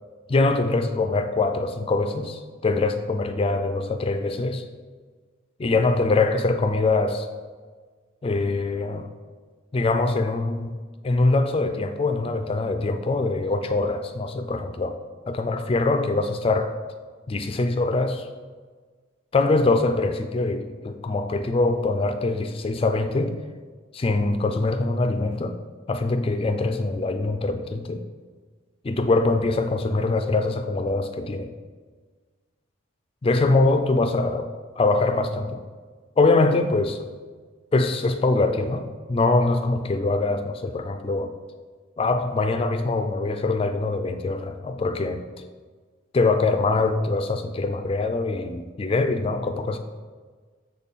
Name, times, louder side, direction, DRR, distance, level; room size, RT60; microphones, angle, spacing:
voice 1, 0.3-4.6 5.6-7.3 8.2-9.1 9.7-10.8 11.0-15.0 15.3-16.8 17.3-18.3 19.3-23.4 23.9-25.6 25.9-28.0 28.8-31.5 33.2-34.4 34.8-35.6 36.2-37.0 37.7-41.3 42.0-45.2 46.1-49.8, left 3 dB, 25° left, 8 dB, 0.3 m, -23 dB
6.5 x 4.1 x 3.6 m, 1.5 s
head